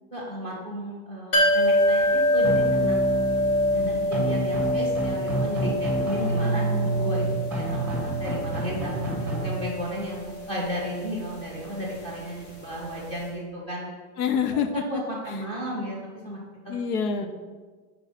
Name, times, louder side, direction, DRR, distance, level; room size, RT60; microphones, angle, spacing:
voice 1, 0.1-3.0 3.7-13.9 14.7-16.0 16.2-16.4 16.6-16.7, equal, 15° left, -3 dB, 1.6 m, -34 dB
sound 1, 1.3-12.9 13.2-13.3, equal, 45° left, 1.8 m, -26 dB
sound 2, 2.4-9.4, right 1 dB, 5° right, 1.5 m, -28 dB
voice 2, 6.2-6.9 14.2-14.8 16.7-17.3, left 6 dB, 80° left, 8 dB, 0.8 m, -27 dB
5.9 x 4.8 x 5.7 m, 1.4 s
supercardioid pair, 180°, 45 cm